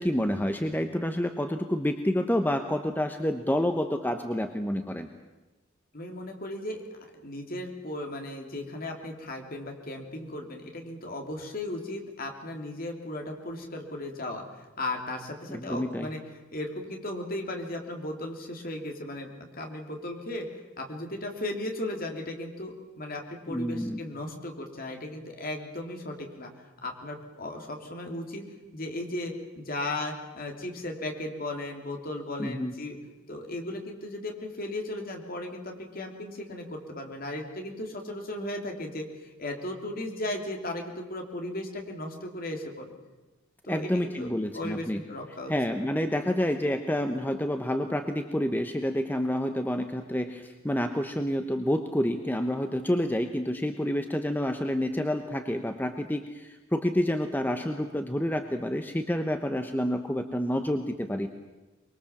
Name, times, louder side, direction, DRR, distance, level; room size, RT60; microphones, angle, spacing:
voice 1, 0.0-5.1 15.5-16.1 23.5-24.0 32.4-32.7 43.7-45.0 45.5-61.3, equal, 10° left, 7 dB, 1.0 m, -28 dB
voice 2, 5.9-6.8 7.1-16.2 16.5-28.5 28.7-33.0 33.3-42.9 43.6-45.9, left 1 dB, 45° left, 3 dB, 3.3 m, -36 dB
24.0 x 22.5 x 7.3 m, 1.1 s
head